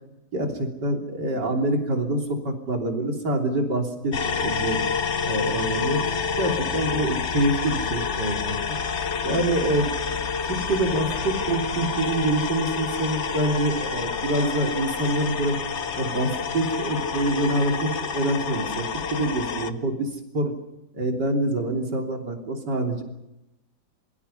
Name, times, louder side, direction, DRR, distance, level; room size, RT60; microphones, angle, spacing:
voice 1, 0.3-4.8 5.2-6.0 6.4-8.8 9.2-9.9 10.4-15.6 16.0-20.5 20.9-23.0, right 1 dB, 80° right, 3 dB, 3.9 m, -26 dB
sound 1, 4.1-19.7, left 5 dB, 45° left, 1.2 m, -28 dB
27.0 x 23.0 x 5.7 m, 0.91 s
omnidirectional pair, 1.8 m